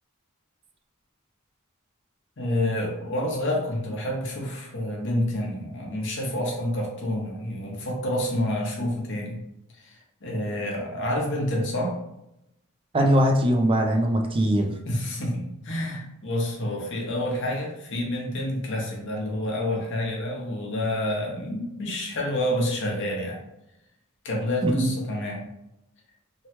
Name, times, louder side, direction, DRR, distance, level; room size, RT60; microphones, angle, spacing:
voice 1, 2.4-9.4 9.8-12.0 14.9-23.4 24.2-25.5, left 1 dB, 60° left, -1 dB, 0.8 m, -28 dB
voice 2, 12.9-14.7 24.6-24.9, equal, 25° right, 3 dB, 0.4 m, -21 dB
2.9 x 2.2 x 2.9 m, 0.86 s
head